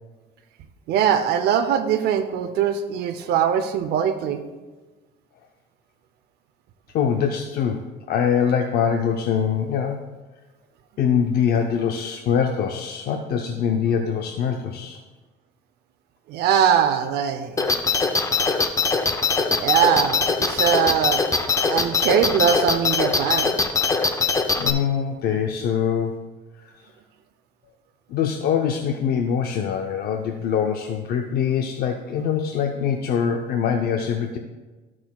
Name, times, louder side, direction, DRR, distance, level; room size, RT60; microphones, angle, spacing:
voice 1, 0.9-4.4 16.3-17.6 19.6-21.2 21.7-23.5, right 8 dB, 70° right, 7 dB, 0.6 m, -21 dB
voice 2, 6.9-10.0 11.0-15.0 24.6-26.2 28.1-34.4, left 7 dB, 65° left, 4 dB, 0.6 m, -23 dB
sound 1, 17.6-24.7, left 4 dB, 20° left, 0.7 m, -21 dB
13.5 x 6.1 x 2.3 m, 1.3 s
cardioid pair, 110°, 17 cm